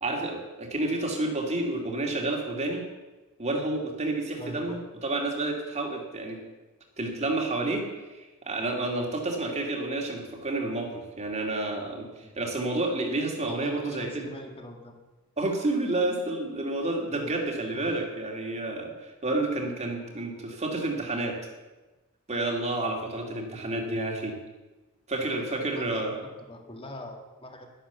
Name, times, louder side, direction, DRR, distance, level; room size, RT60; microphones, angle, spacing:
voice 1, 0.0-2.8 3.4-6.4 7.0-7.8 8.1-12.1 12.4-14.3 15.4-21.4 22.3-24.3 25.1-26.2, right 2 dB, 30° right, 2 dB, 2.4 m, -30 dB
voice 2, 4.4-4.8 12.2-12.3 13.4-15.0 17.7-18.0 25.3-27.7, left 1 dB, 25° left, 3 dB, 1.9 m, -43 dB
11.5 x 11.5 x 6.9 m, 1.1 s
head